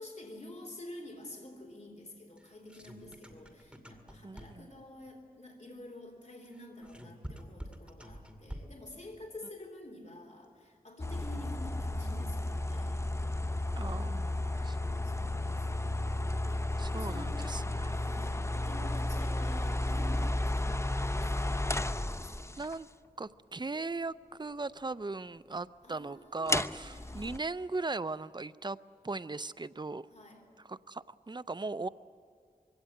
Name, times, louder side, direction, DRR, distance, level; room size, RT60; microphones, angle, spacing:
voice 1, 0.0-13.4 13.9-16.0 16.5-21.7 22.0-22.6 25.8-27.4 30.1-30.4, left 1 dB, 50° left, 2 dB, 3.5 m, -49 dB
sound 1, 2.4-4.8 6.5-8.9, equal, 5° right, 2.3 m, -47 dB
voice 2, 4.2-4.7 13.8-14.8 16.8-17.9 22.6-22.9 23.2-28.8 29.0-30.1 30.6-31.9, right 3 dB, 30° right, 15 dB, 0.5 m, -38 dB
sound 2, 11.0-22.7 26.5-27.4, left 1 dB, 20° left, 0.6 m, -33 dB
23.0 x 17.0 x 9.1 m, 2.1 s
wide cardioid pair, 50°, 15 cm